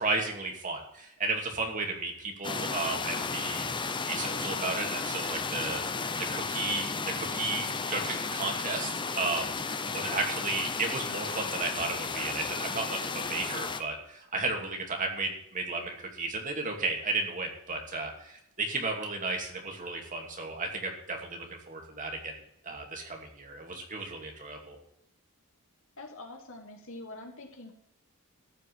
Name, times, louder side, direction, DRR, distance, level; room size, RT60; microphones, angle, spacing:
voice 1, 0.0-5.8 6.3-6.9 7.2-22.3 22.6-24.8, right 3 dB, 35° right, 2 dB, 2.7 m, -34 dB
sound 1, 2.4-13.8, left 4 dB, 20° left, 0.8 m, -33 dB
voice 2, 26.0-27.7, left 2 dB, 60° left, 2 dB, 2.8 m, -45 dB
14.0 x 5.6 x 8.3 m, 0.76 s
head